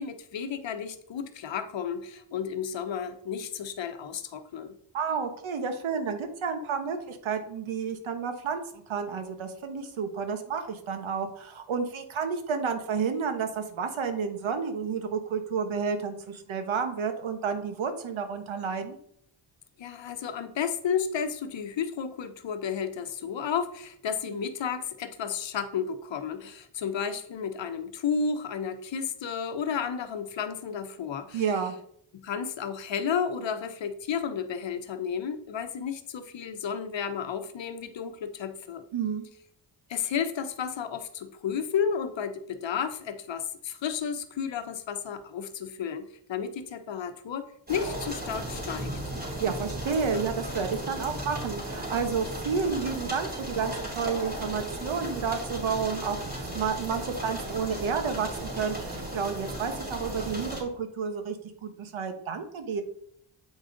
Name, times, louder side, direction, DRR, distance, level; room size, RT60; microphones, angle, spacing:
voice 1, 0.0-4.8 19.8-31.4 32.1-38.8 39.9-48.9, left 7 dB, 65° left, 9 dB, 0.9 m, -32 dB
voice 2, 4.9-19.0 31.3-31.7 38.9-39.2 49.4-56.2 56.5-61.4 61.6-62.8, right 6 dB, 80° right, 7 dB, 1.2 m, -31 dB
sound 1, 47.7-60.6, right 1 dB, 20° right, 2.9 m, -36 dB
7.8 x 5.0 x 3.9 m, 0.67 s
cardioid pair, 80°, 47 cm